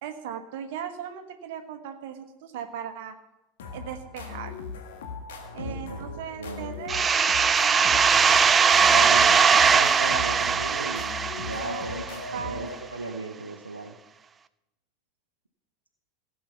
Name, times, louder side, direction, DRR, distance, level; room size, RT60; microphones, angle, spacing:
voice 1, 0.0-3.1 3.7-4.5 5.5-8.3 11.4-11.8 12.3-12.7, right 8 dB, 55° right, 8 dB, 1.3 m, -38 dB
sound 1, 3.6-13.1, left 4 dB, 65° left, 1.8 m, -39 dB
voice 2, 5.6-6.7 8.9-13.9, right 2 dB, 80° right, 4 dB, 0.9 m, -36 dB
sound 2, 6.9-12.4, right 6 dB, 25° right, 0.5 m, -20 dB
16.0 x 7.7 x 5.8 m, 0.92 s
figure-of-eight pair, 80°, 0 cm